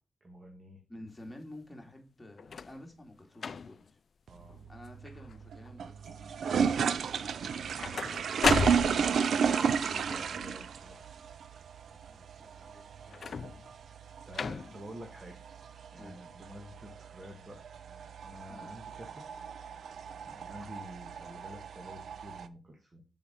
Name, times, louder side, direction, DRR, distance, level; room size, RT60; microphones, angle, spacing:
voice 1, 0.2-0.8 4.3-4.6 5.0-5.1 8.7-11.1 14.3-15.4 15.9-19.5 20.2-23.0, equal, 35° right, 2 dB, 1.7 m, -49 dB
voice 2, 0.9-4.0 4.7-6.4 11.9-13.2 16.0-16.4 18.5-18.7, left 1 dB, 15° left, 1 dB, 2.4 m, -50 dB
sound 1, 2.4-2.8 3.4-3.9 4.5-4.9 5.1-5.7 7.4-9.3 13.1-13.7 14.3-14.9 15.7-15.8, left 6 dB, 60° left, 0.3 m, -34 dB
sound 2, 4.3-22.5, right 6 dB, 80° right, 0.5 m, -33 dB
7.0 x 4.9 x 5.1 m, 0.33 s
cardioid pair, 75°, 0 cm